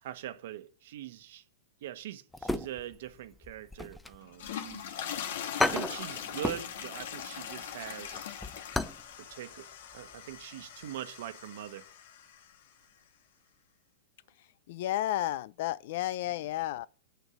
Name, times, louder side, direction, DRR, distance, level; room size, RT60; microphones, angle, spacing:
voice 1, 0.0-1.4 1.8-5.0 5.6-8.3 9.2-9.7 9.9-11.9, right 12 dB, 65° right, 1.1 m, -42 dB
sound 1, 2.3-3.1 3.4-4.8 5.2-5.3 5.6-6.7 7.0-7.2 7.6-9.1 9.3-9.4 9.9-10.2 10.4-10.5, left 2 dB, 5° left, 0.5 m, -33 dB
sound 2, 4.2-12.6, left 9 dB, 75° left, 1.4 m, -41 dB
voice 2, 14.7-16.9, left 14 dB, 60° left, 0.5 m, -32 dB
8.1 x 6.7 x 7.8 m
supercardioid pair, 150°, 0 cm